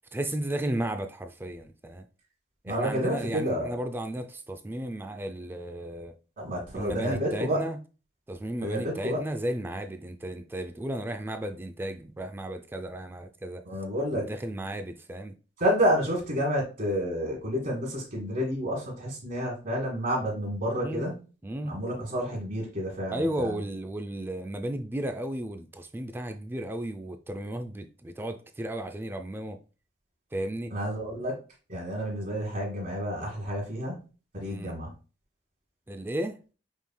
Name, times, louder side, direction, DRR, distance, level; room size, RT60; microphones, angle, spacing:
voice 1, 0.1-2.1 2.6-6.1 6.7-7.8 8.3-13.6 14.1-15.4 20.8-21.1 21.4-21.8 23.1-29.6 30.3-30.7 34.4-34.8 35.9-36.4, right 1 dB, 10° right, 0.3 m, -34 dB
voice 2, 2.7-3.7 6.4-7.6 8.6-9.2 13.6-14.3 15.6-21.2 21.6-23.6 30.7-31.3 31.7-34.0 34.3-34.9, equal, 50° right, 1.6 m, -29 dB
5.4 x 3.2 x 2.2 m
head